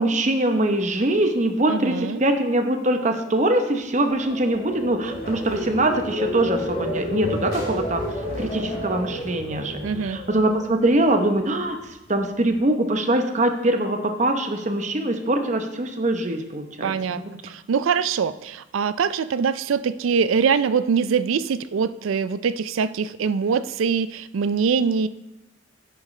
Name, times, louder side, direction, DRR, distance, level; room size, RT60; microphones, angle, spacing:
voice 1, 0.0-17.3, right 1 dB, 35° right, 6 dB, 0.8 m, -23 dB
voice 2, 1.7-2.2 9.8-10.2 16.8-25.1, right 6 dB, 85° right, 16 dB, 0.4 m, -23 dB
sound 1, 4.0-11.2 11.6-12.0, left 1 dB, 30° left, 2.9 m, -31 dB
sound 2, 5.0-9.9, equal, 50° left, 2.9 m, -38 dB
9.9 x 9.0 x 3.2 m, 1.0 s
head